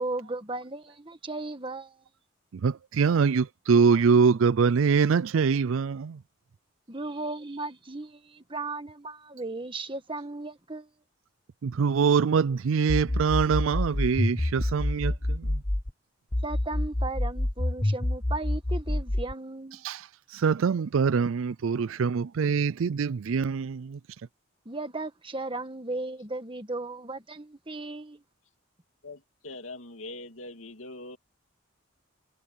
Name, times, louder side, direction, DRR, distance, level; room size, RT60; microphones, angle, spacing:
voice 1, 0.0-2.0 6.9-10.9 16.4-19.8 22.4-22.5 24.6-28.2, right 2 dB, 25° right, 1.6 m, -36 dB
voice 2, 2.6-6.1 11.6-15.1 20.4-23.8, right 5 dB, 70° right, 0.4 m, -23 dB
sound 1, 12.9-15.9 16.3-19.3, left 1 dB, 20° left, 0.9 m, -27 dB
voice 3, 29.0-31.2, left 2 dB, 70° left, 2.7 m, -42 dB
head